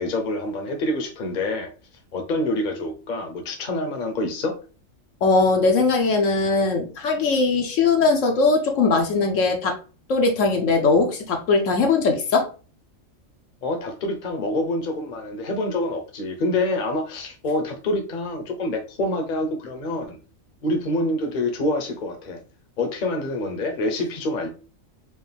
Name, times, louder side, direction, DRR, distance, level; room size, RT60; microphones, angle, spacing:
voice 1, 0.0-1.7 2.1-4.5 13.6-20.2 20.6-22.4 22.8-24.5, left 1 dB, 40° left, 0.9 m, -26 dB
voice 2, 5.2-9.8 10.1-12.5, left 3 dB, 70° left, 1.1 m, -20 dB
4.7 x 2.5 x 3.4 m
omnidirectional pair, 1.4 m